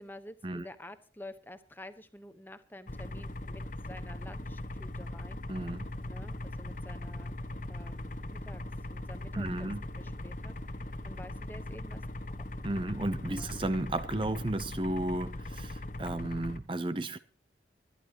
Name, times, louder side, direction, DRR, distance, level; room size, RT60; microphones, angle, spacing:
voice 1, 0.0-5.4 6.1-7.4 7.7-8.6 8.9-12.0 12.4-12.5 13.3-13.5, left 1 dB, 10° left, 1.0 m, -50 dB
sound 1, 2.9-16.6, left 1 dB, 45° left, 1.2 m, -40 dB
voice 2, 5.5-5.9 9.3-9.8 12.6-17.2, right 1 dB, 25° right, 0.6 m, -33 dB
24.5 x 11.0 x 2.9 m
head